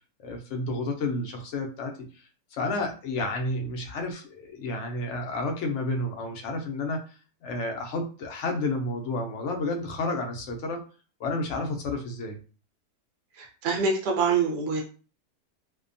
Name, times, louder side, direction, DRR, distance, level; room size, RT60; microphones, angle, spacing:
voice 1, 0.2-1.9 2.5-10.8 11.2-12.4, left 2 dB, 65° left, 2 dB, 0.7 m, -31 dB
voice 2, 13.4-14.8, right 5 dB, 55° right, 0 dB, 0.8 m, -25 dB
2.6 x 2.2 x 2.5 m, 0.37 s
omnidirectional pair, 1.7 m